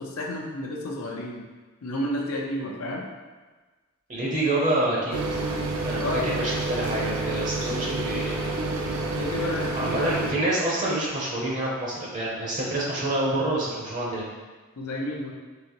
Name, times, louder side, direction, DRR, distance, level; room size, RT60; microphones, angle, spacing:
voice 1, 0.0-1.4 1.8-3.0 6.0-6.3 9.2-10.3 14.8-15.3, left 1 dB, 75° left, -1 dB, 0.6 m, -31 dB
voice 2, 4.1-5.2 5.8-8.4 9.7-14.2, right 1 dB, 35° right, -4 dB, 0.6 m, -27 dB
sound 1, 5.1-10.3, right 2 dB, 90° right, 0.5 m, -29 dB
3.9 x 2.9 x 2.9 m, 1.3 s
head